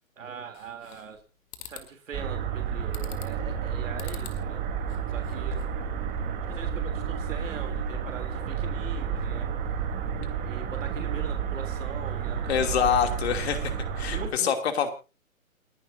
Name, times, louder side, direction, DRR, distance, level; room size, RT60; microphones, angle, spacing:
voice 1, 0.2-1.2 1.6-4.6 5.1-5.6 6.4-9.5 10.4-12.5 14.1-14.5, right 6 dB, 65° right, 5 dB, 3.3 m, -41 dB
sound 1, 0.5-1.2 1.5-1.9 2.9-3.4 4.0-4.4 4.8-5.8, left 10 dB, 25° left, 1.9 m, -44 dB
sound 2, 2.1-14.3, right 7 dB, 20° right, 3.7 m, -31 dB
voice 2, 12.5-14.9, left 8 dB, 50° left, 6 dB, 2.9 m, -26 dB
28.5 x 11.0 x 2.7 m, 0.31 s
hypercardioid pair, 140°, 41 cm